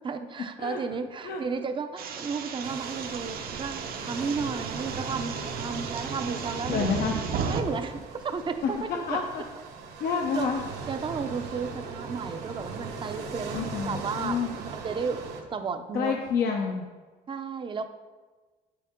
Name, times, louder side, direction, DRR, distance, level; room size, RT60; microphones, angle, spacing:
voice 1, 0.0-6.9 7.5-9.2 10.3-10.5 10.9-16.2 17.3-17.9, right 5 dB, 30° right, 8 dB, 0.6 m, -33 dB
sound 1, 2.0-7.6, right 6 dB, 60° right, 0.9 m, -35 dB
sound 2, 2.6-15.4, right 4 dB, 80° right, 1.2 m, -38 dB
voice 2, 6.7-7.2 8.9-9.2 10.0-10.6 13.5-14.5 15.9-16.9, left 6 dB, 65° left, 1 dB, 0.8 m, -28 dB
8.4 x 6.9 x 3.7 m, 1.3 s
cardioid pair, 110°, 17 cm